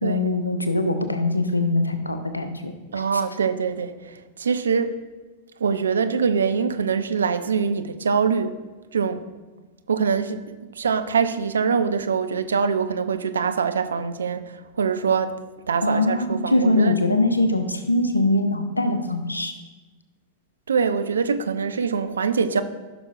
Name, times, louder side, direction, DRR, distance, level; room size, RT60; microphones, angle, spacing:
voice 1, 0.0-3.2 15.8-19.5, left 2 dB, 85° left, 0.8 m, -22 dB
voice 2, 2.9-4.1 4.4-5.0 5.6-8.6 8.9-9.2 9.9-15.3 15.7-16.9 20.7-22.6, right 6 dB, 75° right, 0.5 m, -23 dB
15.5 x 6.1 x 2.5 m
figure-of-eight pair, 95°, 0 cm